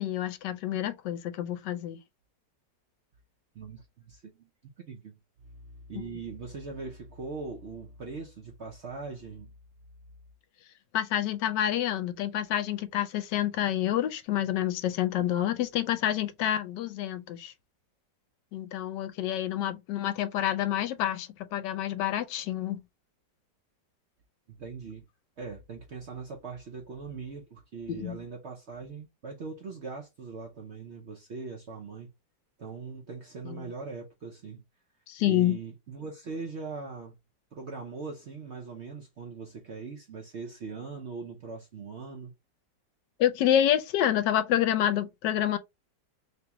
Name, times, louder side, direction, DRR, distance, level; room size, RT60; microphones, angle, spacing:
voice 1, 0.0-2.0 5.9-6.0 10.9-17.5 18.5-22.8 27.9-28.2 33.5-33.6 35.1-35.6 43.2-45.6, left 11 dB, 75° left, 1.2 m, -28 dB
voice 2, 3.5-5.2 5.4-9.5 24.5-25.1 25.4-32.1 32.6-34.6 35.2-37.1 37.5-42.3, right 4 dB, 65° right, 0.7 m, -41 dB
3.1 x 2.9 x 3.3 m
omnidirectional pair, 1.9 m